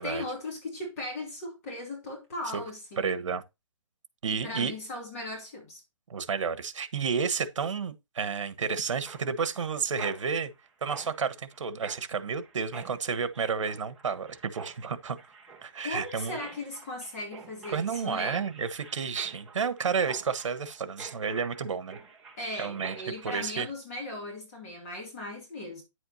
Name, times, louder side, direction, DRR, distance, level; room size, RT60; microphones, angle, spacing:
voice 1, 0.0-3.2 4.3-5.8 15.8-18.4 22.4-25.8, left 2 dB, 30° left, 2.8 m, -38 dB
voice 2, 3.0-3.4 4.2-4.7 6.1-10.5 10.8-15.2 15.6-16.4 17.7-22.0 22.6-23.0 23.2-23.7, right 6 dB, 65° right, 1.3 m, -31 dB
Mechanisms, 9.1-23.3, right 5 dB, 5° right, 1.0 m, -48 dB
10.0 x 7.9 x 2.8 m
hypercardioid pair, 175°, 17 cm